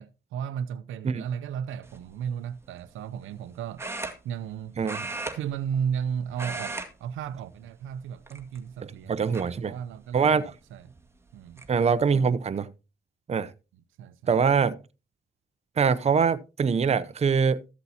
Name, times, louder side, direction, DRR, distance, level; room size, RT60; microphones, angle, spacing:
voice 1, 0.0-3.9 4.2-4.8 5.3-10.9 11.3-11.6 14.0-14.2, right 8 dB, 80° right, 0.6 m, -34 dB
sound 1, 1.8-2.1 3.8-4.6 4.8-6.0 6.3-6.9 7.2-7.4 8.2-8.8 9.3-9.4 10.9-11.0 11.3-11.7, right 3 dB, 10° right, 1.9 m, -36 dB
voice 2, 8.8-9.7 10.1-10.5 11.7-12.7 13.3-13.5 14.3-14.8 15.8-17.6, right 6 dB, 35° right, 0.7 m, -23 dB
14.0 x 8.0 x 2.8 m
cardioid pair, 90°, 20 cm